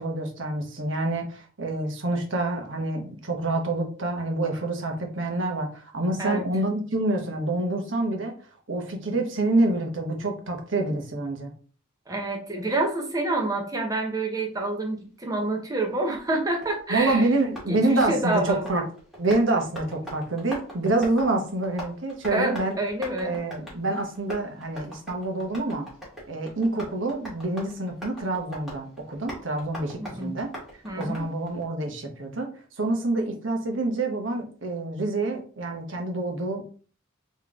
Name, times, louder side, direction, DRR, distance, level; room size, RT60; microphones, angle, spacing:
voice 1, 0.0-8.3 8.7-11.5 16.9-18.8 19.2-22.8 23.2-25.9 26.3-30.5 31.0-32.5 32.8-36.7, right 2 dB, 65° right, 3 dB, 1.0 m, -27 dB
voice 2, 12.1-17.3 17.7-18.7 22.3-23.4 30.0-30.3 30.8-31.3, right 2 dB, 20° right, 2 dB, 1.0 m, -28 dB
Tap, 16.1-31.6, equal, ahead, 1.9 m, -42 dB
3.9 x 3.2 x 3.6 m, 0.41 s
head